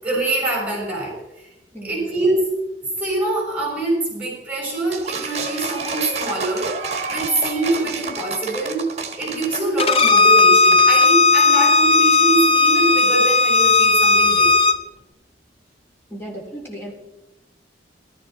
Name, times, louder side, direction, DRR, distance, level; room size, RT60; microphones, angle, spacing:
voice 1, 0.0-1.5 1.8-2.5 3.0-6.7 7.1-8.9 9.2-14.5, right 2 dB, 10° right, -3 dB, 6.1 m, -24 dB
voice 2, 1.7-2.1 16.1-17.0, right 1 dB, 15° left, -2 dB, 3.7 m, -35 dB
sound 1, 4.9-11.1, right 4 dB, 40° right, 1.6 m, -29 dB
Bowed string instrument, 9.8-14.8, left 4 dB, 35° left, 0.8 m, -15 dB
15.0 x 13.5 x 4.3 m, 0.96 s
head